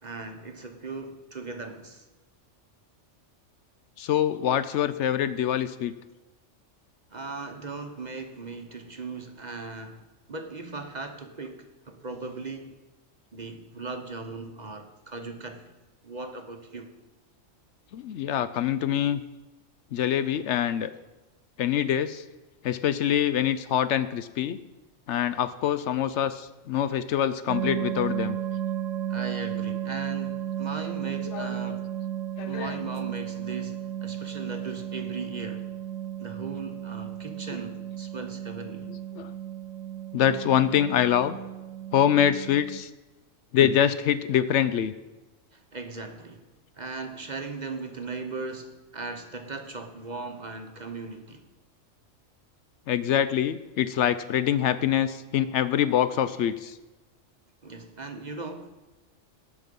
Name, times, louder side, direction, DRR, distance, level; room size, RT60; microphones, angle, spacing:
voice 1, 0.0-2.1 7.1-10.0 10.3-12.7 13.3-15.7 16.0-16.9 29.1-31.9 32.4-35.7 36.2-38.9 45.5-46.5 46.8-51.5 57.6-58.7, right 3 dB, 40° right, 0.9 m, -38 dB
voice 2, 4.0-5.9 17.9-19.2 19.9-20.9 21.6-22.2 22.6-24.6 25.1-28.4 31.2-31.8 32.4-32.8 39.1-39.3 40.1-41.4 41.9-42.9 43.5-44.9 52.9-56.8, left 10 dB, 70° left, 0.8 m, -25 dB
sound 1, 27.5-42.8, right 11 dB, 85° right, 1.1 m, -34 dB
18.0 x 6.2 x 5.2 m
omnidirectional pair, 1.3 m